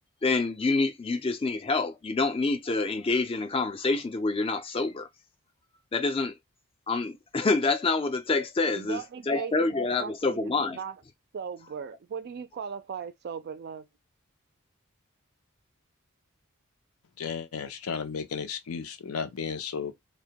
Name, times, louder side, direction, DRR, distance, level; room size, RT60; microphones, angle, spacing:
voice 1, 0.2-5.1 5.9-6.3 6.9-10.8, left 3 dB, 25° left, 0.4 m, -27 dB
voice 2, 8.7-10.9 11.3-13.8, right 6 dB, 50° right, 0.3 m, -38 dB
voice 3, 17.2-19.9, left 6 dB, 90° left, 0.5 m, -34 dB
2.1 x 2.1 x 2.7 m
head